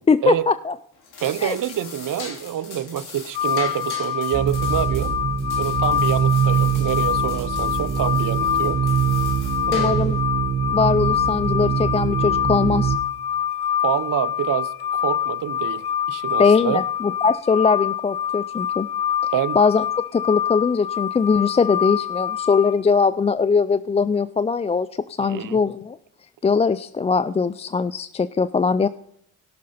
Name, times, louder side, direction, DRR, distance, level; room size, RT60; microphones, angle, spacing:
voice 1, 0.1-0.7 1.4-1.6 9.7-10.2 10.7-12.9 16.4-18.9 19.2-19.8 20.1-24.9 25.2-26.0 26.4-28.9, left 5 dB, 20° left, 0.3 m, -21 dB
sound 1, 0.9-10.2, left 4 dB, 70° left, 3.1 m, -40 dB
voice 2, 1.2-5.1 5.6-8.8 9.7-10.2 13.8-16.8 19.3-19.6 25.2-25.6, right 11 dB, 55° right, 0.7 m, -26 dB
sound 2, 3.3-22.7, left 9 dB, 85° left, 1.1 m, -25 dB
sound 3, 4.3-13.0, right 8 dB, 30° right, 1.0 m, -23 dB
17.0 x 6.3 x 4.2 m
supercardioid pair, 65°, 39 cm